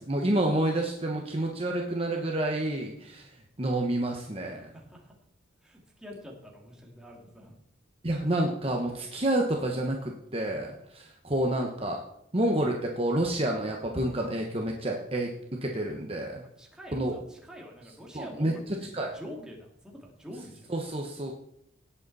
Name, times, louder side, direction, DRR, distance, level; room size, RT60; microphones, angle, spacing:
voice 1, 0.0-4.7 8.0-12.0 12.3-15.3 15.6-16.4 16.9-17.2 18.1-18.5 18.9-19.1 20.7-21.3, right 1 dB, 30° right, 1 dB, 1.2 m, -29 dB
voice 2, 4.7-5.1 5.6-7.6 13.5-13.6 16.6-20.7, equal, 5° right, -2 dB, 2.6 m, -46 dB
18.0 x 8.0 x 4.2 m, 0.75 s
head